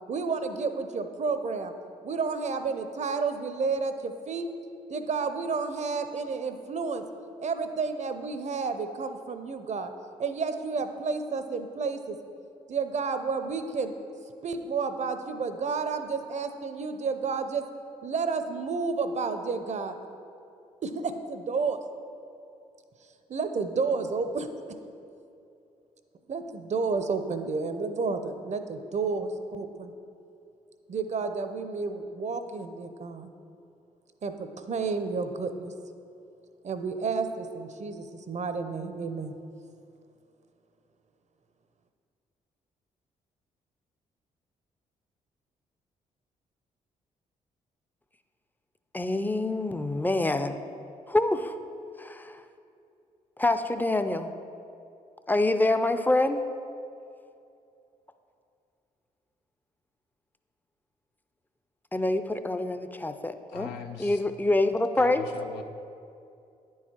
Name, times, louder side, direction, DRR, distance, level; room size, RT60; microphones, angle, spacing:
voice 1, 0.1-1.7 2.0-4.5 4.9-7.0 7.4-9.9 10.2-12.2 12.7-13.9 14.4-17.6 18.0-20.0 20.8-21.8 23.3-24.5 26.3-29.9 30.9-33.3 34.2-35.7 36.6-39.3, right 4 dB, 45° right, 9 dB, 0.7 m, -31 dB
voice 2, 48.9-50.6 51.1-51.5 52.0-52.4 53.4-54.3 55.3-56.5 61.9-63.7 64.0-65.3, left 2 dB, 10° left, 9 dB, 0.5 m, -26 dB
voice 3, 63.5-64.2 64.9-65.6, left 6 dB, 75° left, 5 dB, 0.5 m, -40 dB
9.6 x 4.7 x 4.4 m, 2.6 s
hypercardioid pair, 45°, 17 cm